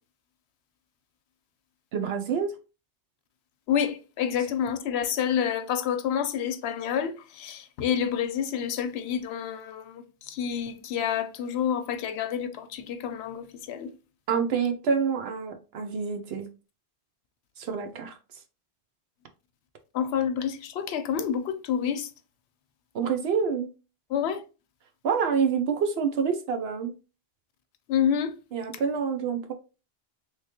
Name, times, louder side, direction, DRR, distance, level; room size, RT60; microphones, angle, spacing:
voice 1, 1.9-2.5 14.3-16.5 17.6-18.1 22.9-23.7 25.0-26.9 28.5-29.5, right 6 dB, 75° right, 0.9 m, -27 dB
voice 2, 3.7-13.9 19.9-22.1 24.1-24.4 27.9-28.4, left 8 dB, 85° left, 0.8 m, -28 dB
3.3 x 3.1 x 2.8 m
omnidirectional pair, 1.0 m